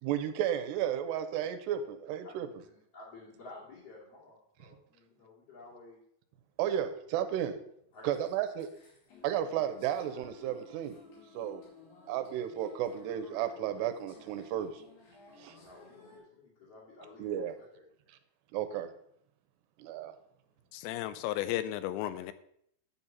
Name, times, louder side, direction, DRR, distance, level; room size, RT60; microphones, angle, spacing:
voice 1, 0.0-2.5 6.6-7.6 8.0-8.7 9.2-11.0 11.3-11.6 12.1-14.8 15.4-15.5 17.2-17.5 18.5-18.9 19.8-20.1, right 10 dB, 85° right, 9 dB, 2.7 m, -33 dB
voice 2, 1.0-1.8 2.2-6.0 7.9-8.3 15.5-17.8, left 2 dB, 45° left, -7 dB, 2.6 m, -53 dB
sound 1, 8.0-16.2, left 2 dB, 70° left, 4.5 m, -56 dB
voice 3, 20.7-22.3, left 13 dB, 90° left, 13 dB, 2.9 m, -34 dB
9.5 x 4.1 x 7.2 m, 0.71 s
omnidirectional pair, 5.0 m